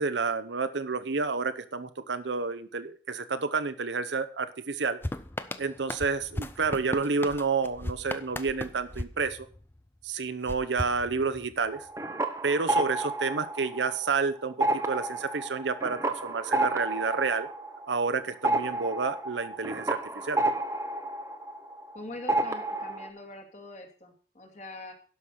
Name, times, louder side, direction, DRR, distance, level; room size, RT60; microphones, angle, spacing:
voice 1, 0.0-5.0 5.6-9.4 10.0-11.9 12.4-17.5 17.9-20.4, right 4 dB, 85° right, 10 dB, 0.9 m, -30 dB
sound 1, 5.0-9.9 10.5-11.7, left 1 dB, 10° left, 0.5 m, -37 dB
sound 2, 11.7-14.2 14.5-22.0 22.3-23.1, right 2 dB, 15° right, 0.8 m, -30 dB
voice 2, 21.9-24.9, left 2 dB, 40° left, 2 dB, 2.4 m, -43 dB
12.0 x 5.7 x 6.4 m, 0.42 s
head